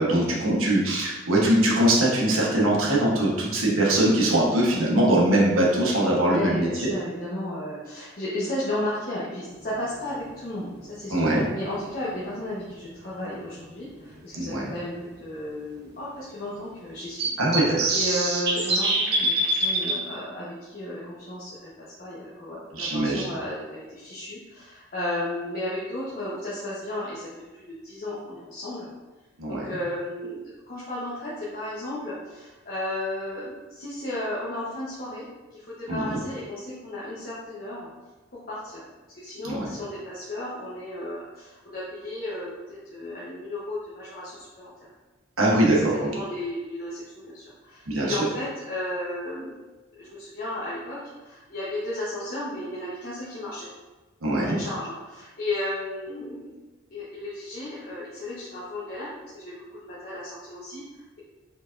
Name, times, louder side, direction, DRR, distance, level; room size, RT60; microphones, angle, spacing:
voice 1, 0.0-6.9 11.1-11.4 14.3-14.7 17.4-17.8 22.8-23.2 29.4-29.7 35.9-36.2 39.4-39.7 45.4-46.1 47.9-48.2 54.2-54.6, right 1 dB, 75° right, -4 dB, 1.1 m, -22 dB
voice 2, 6.3-11.2 11.5-17.3 17.9-28.9 29.5-35.2 35.5-37.9 38.5-38.8 39.1-44.7 45.7-49.5 50.0-53.7 54.3-56.5 56.9-61.2, left 1 dB, 45° left, -8 dB, 0.8 m, -34 dB
sound 1, 11.6-11.7 13.7-13.8 14.3-14.4 14.6-14.7 17.2-20.0, right 1 dB, 55° right, 0.8 m, -24 dB
4.6 x 4.0 x 2.5 m, 1.2 s
head